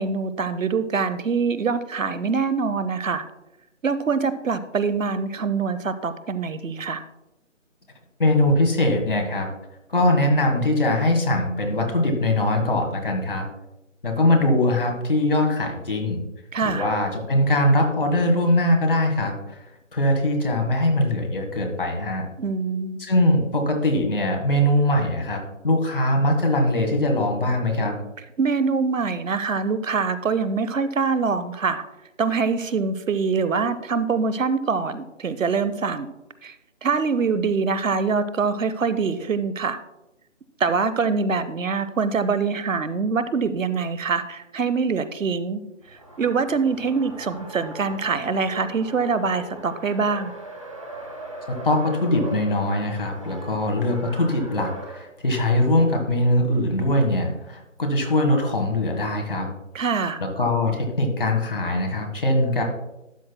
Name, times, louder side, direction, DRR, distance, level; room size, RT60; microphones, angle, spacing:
voice 1, 0.0-3.2 3.8-7.0 16.5-16.9 22.4-23.0 28.4-31.8 32.2-36.1 36.4-36.5 36.8-39.8 40.6-45.6 46.2-50.3 59.7-60.2, right 5 dB, 80° right, 12 dB, 0.8 m, -24 dB
voice 2, 8.2-9.5 9.9-13.5 14.0-16.2 16.6-19.3 19.9-22.3 23.0-27.9 51.6-59.5 60.4-62.6, left 1 dB, 45° left, 3 dB, 1.6 m, -21 dB
Race car auto racing, 45.8-55.0, right 1 dB, 25° right, 0.7 m, -40 dB
12.0 x 7.6 x 2.2 m, 0.92 s
figure-of-eight pair, 170°, 38 cm